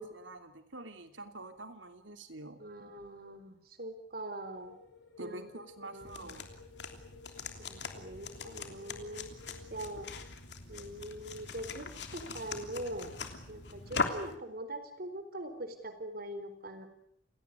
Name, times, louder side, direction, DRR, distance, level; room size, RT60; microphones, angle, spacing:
voice 1, 0.0-2.6 5.2-6.5, right 2 dB, 90° right, 8 dB, 3.0 m, -47 dB
voice 2, 2.6-4.7 5.2-5.5 5.8-6.4 7.6-9.3 9.7-10.1 10.7-13.1 13.5-16.9, right 1 dB, 55° right, 10 dB, 4.4 m, -43 dB
sound 1, 4.5-10.3, left 4 dB, 90° left, 4.6 m, -56 dB
sound 2, 6.0-14.4, left 4 dB, 65° left, 3.1 m, -41 dB
29.5 x 17.5 x 9.7 m, 0.72 s
head